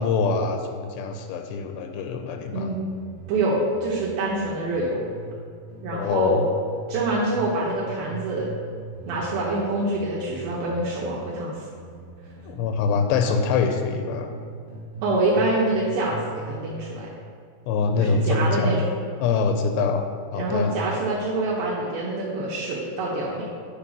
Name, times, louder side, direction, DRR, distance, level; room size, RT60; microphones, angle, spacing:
voice 1, 0.0-2.7 5.9-6.4 12.5-14.3 17.7-18.7 19.2-20.0 20.3-20.7, left 4 dB, 85° left, 6 dB, 2.5 m, -24 dB
sound 1, 2.7-5.4 5.7-7.4 7.7-13.4 13.7-15.4 15.7-16.8, right 2 dB, 60° right, 3.0 m, -40 dB
voice 2, 3.3-5.0 5.8-6.5 6.9-8.5 9.1-11.7 15.0-16.2 16.4-17.1 18.0-18.9 20.3-23.4, right 2 dB, 80° right, -5 dB, 2.7 m, -26 dB
9.2 x 4.0 x 6.1 m, 2.2 s
omnidirectional pair, 4.3 m